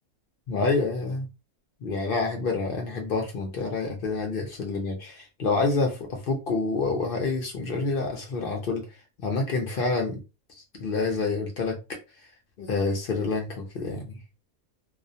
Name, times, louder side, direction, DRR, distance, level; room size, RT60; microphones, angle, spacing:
voice 1, 0.5-1.3 1.8-8.9 9.2-10.2 10.8-11.8 12.6-14.2, left 3 dB, 55° left, 1 dB, 0.6 m, -27 dB
2.4 x 2.0 x 2.6 m, 0.27 s
omnidirectional pair, 1.4 m